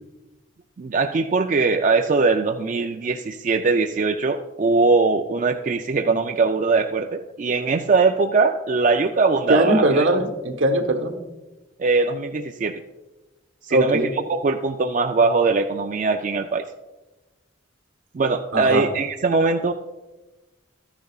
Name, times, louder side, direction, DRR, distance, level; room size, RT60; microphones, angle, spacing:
voice 1, 0.8-10.0 11.8-12.8 13.6-16.6 18.1-19.7, right 4 dB, 40° right, 4 dB, 0.3 m, -21 dB
voice 2, 9.5-11.2 13.7-14.1 18.5-18.9, right 1 dB, 75° right, 3 dB, 1.2 m, -20 dB
13.5 x 10.5 x 2.4 m, 1.1 s
head